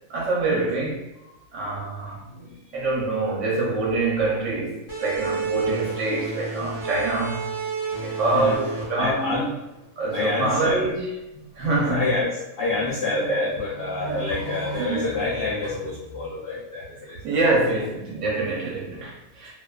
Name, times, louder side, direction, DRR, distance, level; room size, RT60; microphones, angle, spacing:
voice 1, 0.1-1.0 1.5-7.5 8.0-9.4 10.0-11.1 11.6-12.1 13.1-13.5 14.0-14.2 14.8-15.1 17.2-19.5, right 3 dB, 65° right, -3 dB, 0.8 m, -25 dB
voice 2, 2.3-2.8 7.8-8.6 9.0-9.5 10.0-11.0 11.5-17.4 17.7-17.9, left 3 dB, 90° left, -6 dB, 0.5 m, -28 dB
sound 1, 4.9-10.2, right 4 dB, 25° left, 0.7 m, -31 dB
2.5 x 2.3 x 2.2 m, 0.95 s
omnidirectional pair, 1.6 m